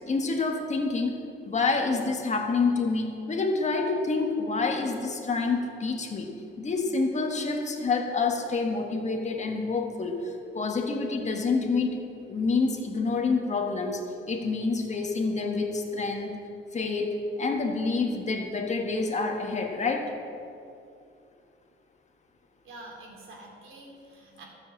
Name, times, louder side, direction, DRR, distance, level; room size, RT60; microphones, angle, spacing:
voice 1, 0.1-1.1 1.4-6.3 6.6-16.3 16.7-20.1, left 4 dB, 35° left, 2 dB, 1.5 m, -28 dB
voice 2, 22.6-24.4, right 2 dB, 70° right, -1 dB, 3.1 m, -47 dB
12.5 x 7.3 x 7.3 m, 2.6 s
cardioid pair, 120°, 21 cm